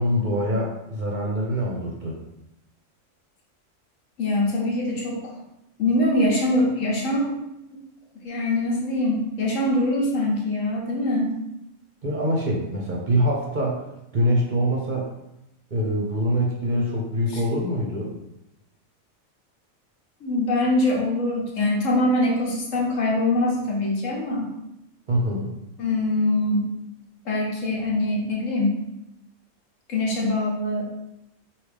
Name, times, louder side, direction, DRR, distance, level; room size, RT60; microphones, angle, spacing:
voice 1, 0.0-2.2 12.0-13.8 14.1-15.1 15.7-18.1 25.1-25.5, equal, 45° right, -2 dB, 0.7 m, -24 dB
voice 2, 4.2-5.2 5.8-7.4 8.2-11.3 17.3-17.4 20.2-24.5 25.8-26.7 27.2-28.8 29.9-30.9, left 1 dB, 80° left, -2 dB, 1.4 m, -23 dB
4.8 x 2.8 x 3.3 m, 0.87 s
omnidirectional pair, 1.3 m